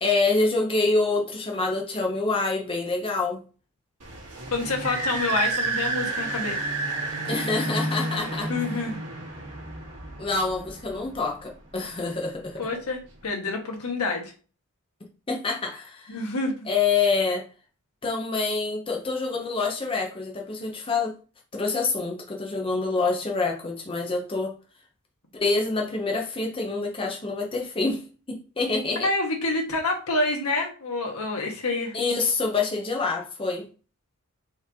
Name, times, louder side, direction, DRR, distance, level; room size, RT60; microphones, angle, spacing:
voice 1, 0.0-3.4 7.3-8.5 10.2-12.6 15.3-16.2 16.7-17.5 18.0-21.1 21.5-24.5 25.3-29.1 31.9-33.7, left 3 dB, 25° left, 0.7 m, -26 dB
sound 1, 4.0-11.3, right 2 dB, 90° right, 1.6 m, -31 dB
voice 2, 4.5-6.6 8.5-9.0 12.6-14.3 16.1-16.5 28.9-32.0, left 2 dB, 75° left, 1.3 m, -27 dB
4.5 x 3.2 x 3.5 m
head